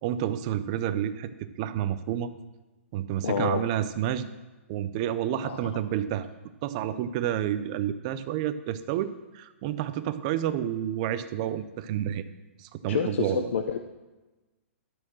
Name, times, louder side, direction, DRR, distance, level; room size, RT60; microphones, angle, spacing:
voice 1, 0.0-2.3 2.9-4.3 4.7-6.3 6.6-12.2 12.6-13.5, right 11 dB, 30° right, 11 dB, 0.4 m, -29 dB
voice 2, 3.2-3.6 5.4-5.6 12.9-13.8, left 6 dB, 65° left, 7 dB, 0.6 m, -28 dB
12.5 x 4.4 x 6.2 m, 1.1 s
hypercardioid pair, 165°, 7 cm